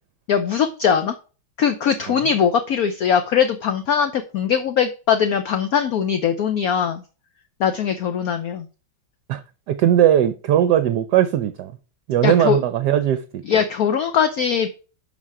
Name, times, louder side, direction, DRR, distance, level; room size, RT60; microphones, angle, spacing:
voice 1, 0.3-1.1 1.6-7.0 7.6-8.7 12.2-12.6 13.5-14.7, left 7 dB, 65° left, 1.0 m, -21 dB
voice 2, 9.3-11.7 12.1-13.6, right 11 dB, 70° right, 1.1 m, -19 dB
11.5 x 4.1 x 4.7 m
omnidirectional pair, 2.2 m